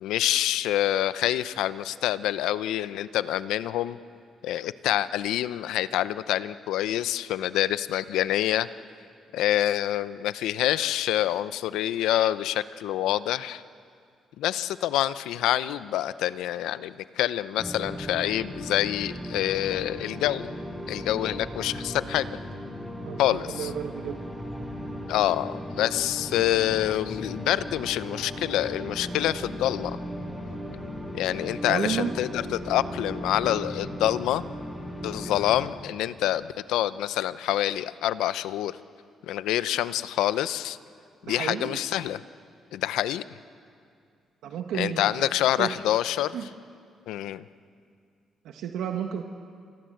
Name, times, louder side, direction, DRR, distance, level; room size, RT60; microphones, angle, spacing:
voice 1, 0.0-4.0 4.4-8.7 9.3-13.6 14.4-20.5 20.9-22.3 23.2-23.7 25.1-30.0 31.1-34.4 35.0-38.8 39.3-40.8 41.2-42.2 42.7-43.2 44.7-46.4 47.1-47.4, left 13 dB, 90° left, 15 dB, 0.7 m, -26 dB
sound 1, 17.6-35.7, equal, 5° left, 7.3 m, -37 dB
voice 2, 23.0-24.2 24.5-24.7 31.7-32.1 41.3-41.8 44.4-45.3 45.6-45.7 46.3-46.5 48.4-49.2, right 8 dB, 80° right, 4 dB, 1.4 m, -32 dB
29.5 x 25.0 x 7.9 m, 2.3 s
cardioid pair, 90°, 0 cm